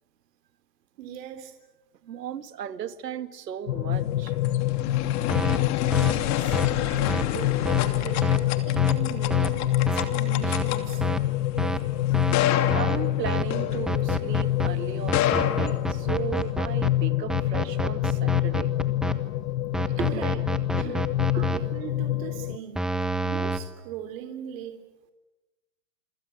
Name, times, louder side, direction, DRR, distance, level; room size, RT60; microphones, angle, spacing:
voice 1, 1.0-1.5 2.0-2.1 6.0-11.0 20.0-20.4 20.7-20.9 21.3-22.9 23.2-24.8, right 9 dB, 55° right, 7 dB, 3.5 m, -40 dB
voice 2, 2.1-4.3 6.6-7.0 12.7-18.7 20.0-20.3 20.8-21.1 21.4-21.5, right 9 dB, 80° right, 11 dB, 2.3 m, -35 dB
sound 1, 3.7-22.6, left 14 dB, 70° left, 0.9 m, -26 dB
sound 2, 4.0-14.4 15.0-16.5, left 11 dB, 35° left, 2.9 m, -30 dB
sound 3, 5.3-5.6 5.9-6.1 6.5-6.7 7.1-7.2 7.7-7.8 8.2-8.4 8.8-8.9 9.3-9.5 9.9-10.1 10.4-10.6 11.0-11.2 11.6-11.8 12.1-12.4 12.7-13.0 13.3-13.4 13.9-14.7 15.1-16.9 17.3-19.1 19.7-21.6 22.8-23.6, right 1 dB, ahead, 1.4 m, -28 dB
27.5 x 25.5 x 8.1 m, 1.0 s
hypercardioid pair, 130°, 48 cm